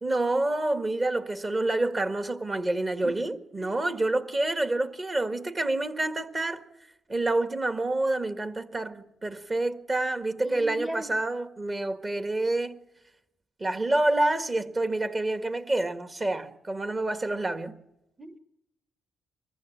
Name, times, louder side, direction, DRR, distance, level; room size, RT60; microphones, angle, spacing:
voice 1, 0.0-6.6 7.1-12.8 13.6-17.7, right 2 dB, 30° right, 1.7 m, -28 dB
voice 2, 10.4-11.1 18.2-18.4, right 1 dB, 15° right, 1.1 m, -38 dB
21.5 x 14.5 x 8.7 m
supercardioid pair, 65°, 0 cm